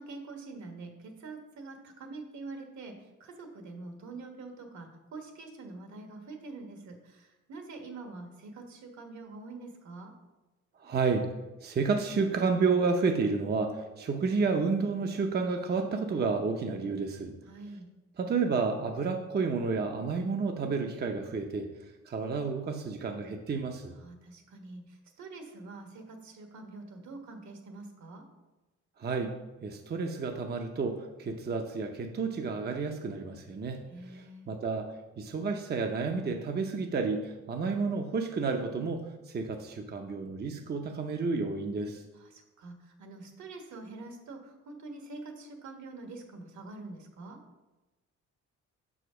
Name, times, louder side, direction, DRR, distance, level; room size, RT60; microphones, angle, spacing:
voice 1, 0.0-10.1 17.4-17.9 24.0-28.2 33.9-34.5 42.1-47.4, right 3 dB, 70° right, 4 dB, 1.4 m, -45 dB
voice 2, 10.8-11.3 11.6-17.3 18.2-21.7 22.1-23.9 29.0-29.3 29.6-34.9 35.2-42.0, right 4 dB, 35° right, 4 dB, 0.6 m, -31 dB
6.0 x 5.0 x 4.9 m, 1.1 s
cardioid pair, 90°, 30 cm